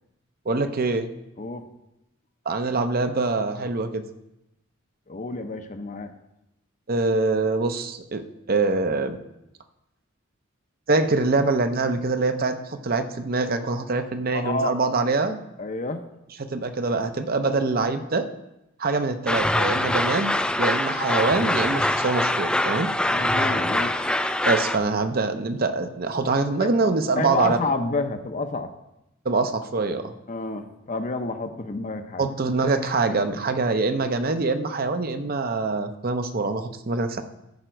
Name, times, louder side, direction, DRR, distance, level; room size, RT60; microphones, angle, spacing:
voice 1, 0.5-1.1 2.5-4.0 6.9-9.2 10.9-15.4 16.5-18.3 18.8-20.3 20.6-22.9 24.4-27.6 29.2-30.1 32.2-37.2, right 3 dB, 45° right, 8 dB, 0.7 m, -24 dB
voice 2, 5.1-6.1 14.3-14.7 15.6-16.0 23.1-24.1 26.6-26.7 27.2-28.7 30.3-32.3, left 3 dB, 40° left, 8 dB, 0.7 m, -29 dB
sound 1, 19.3-24.8, left 1 dB, 5° left, 0.3 m, -24 dB
14.5 x 5.1 x 4.5 m, 0.89 s
head